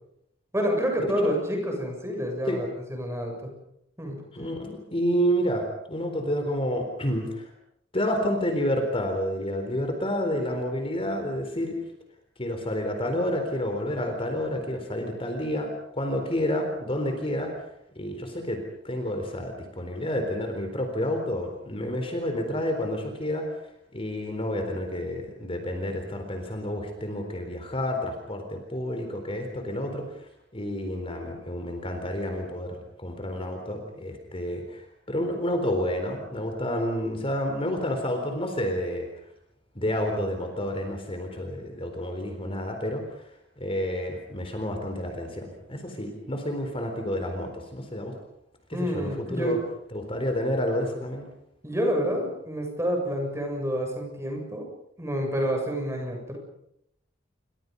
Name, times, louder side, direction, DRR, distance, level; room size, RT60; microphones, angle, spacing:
voice 1, 0.5-3.5 4.0-4.2 48.7-49.6 51.6-54.7 55.0-56.4, equal, 15° right, 2 dB, 7.3 m, -28 dB
voice 2, 4.3-7.5 7.9-11.8 12.4-17.5 18.0-23.4 23.9-30.1 30.5-39.1 39.7-43.0 43.6-48.2 48.7-49.6 49.9-51.3, equal, 30° left, 5 dB, 4.1 m, -29 dB
29.0 x 25.5 x 5.4 m, 0.75 s
head